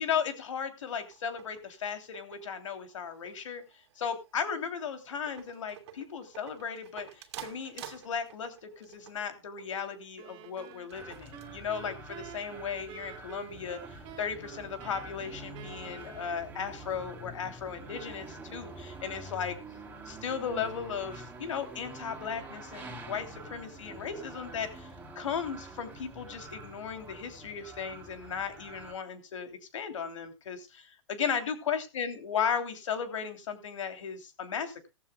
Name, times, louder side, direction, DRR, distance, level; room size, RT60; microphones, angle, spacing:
voice 1, 0.0-3.6 4.0-19.6 20.1-24.9 25.1-30.7 31.1-34.9, left 7 dB, 75° left, 7 dB, 3.1 m, -36 dB
sound 1, 0.9-11.5, right 11 dB, 60° right, 2.4 m, -51 dB
sound 2, 10.2-16.8, right 12 dB, 30° right, 2.5 m, -49 dB
sound 3, 10.9-28.9, right 2 dB, 10° right, 2.9 m, -46 dB
17.5 x 14.5 x 2.3 m, 0.27 s
hypercardioid pair, 135°, 16 cm